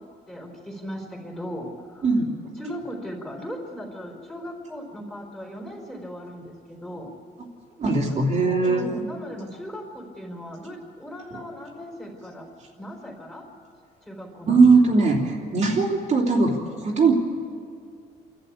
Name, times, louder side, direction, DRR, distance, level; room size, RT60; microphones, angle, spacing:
voice 1, 0.0-2.1 2.6-7.1 8.0-8.2 8.6-12.5 12.8-13.5 14.0-14.7, equal, 5° left, 0 dB, 4.4 m, -37 dB
voice 2, 2.0-2.3 7.8-8.9 11.3-11.4 14.4-17.1, right 4 dB, 45° right, -2 dB, 3.1 m, -20 dB
27.5 x 12.5 x 8.7 m, 2.3 s
cardioid pair, 110°, 17 cm